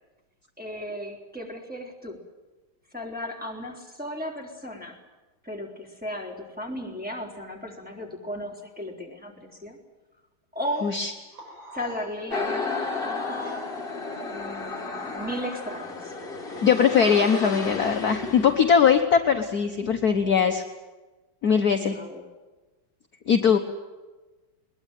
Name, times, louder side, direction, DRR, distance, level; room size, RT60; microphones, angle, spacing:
voice 1, 0.6-2.2 2.9-5.0 5.4-9.8 10.5-11.0 11.7-13.7 14.2-16.1 21.7-22.2, equal, 5° right, -1 dB, 3.8 m, -35 dB
sound 1, 10.6-14.0, equal, 60° right, 7.5 m, -46 dB
sound 2, 12.3-18.7, left 3 dB, 25° left, 2.4 m, -33 dB
voice 2, 16.6-20.6 21.4-22.0 23.3-23.6, left 7 dB, 50° left, 5 dB, 1.5 m, -20 dB
21.5 x 21.0 x 9.3 m, 1.2 s
omnidirectional pair, 2.3 m